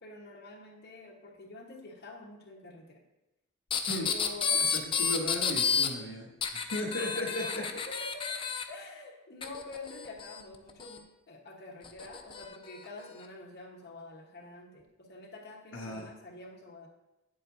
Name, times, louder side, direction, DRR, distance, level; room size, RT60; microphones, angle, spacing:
voice 1, 0.0-3.0 4.0-4.7 6.9-8.4 8.7-16.9, left 2 dB, 50° left, 0 dB, 1.2 m, -47 dB
sound 1, 3.7-5.9 6.4-8.6 9.4-11.0 11.8-12.4 13.2-13.3, left 6 dB, 25° left, 0.4 m, -30 dB
voice 2, 5.0-7.6 15.7-16.1, left 1 dB, 75° left, -2 dB, 2.2 m, -35 dB
9.2 x 7.6 x 2.6 m, 0.94 s
head